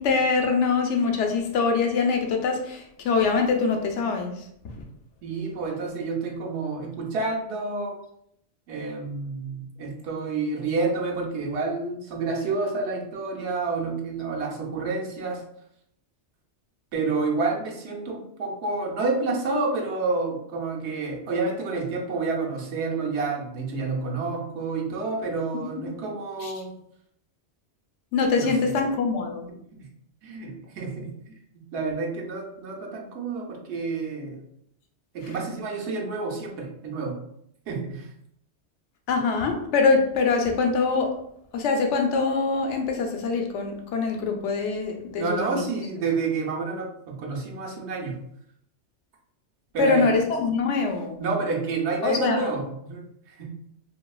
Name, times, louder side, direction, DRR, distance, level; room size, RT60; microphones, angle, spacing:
voice 1, 0.0-4.3 26.4-26.5 28.1-29.5 39.1-41.1 41.5-45.6 49.8-51.2 52.0-52.5, left 4 dB, 80° left, 3 dB, 0.9 m, -24 dB
voice 2, 5.2-8.0 8.7-15.4 16.9-26.7 28.4-28.7 29.8-29.9 30.2-34.4 35.1-37.2 37.7-38.1 45.2-48.2 49.7-50.1 51.2-53.5, right 3 dB, 75° right, 0 dB, 0.9 m, -29 dB
2.9 x 2.7 x 2.3 m, 0.71 s
omnidirectional pair, 1.2 m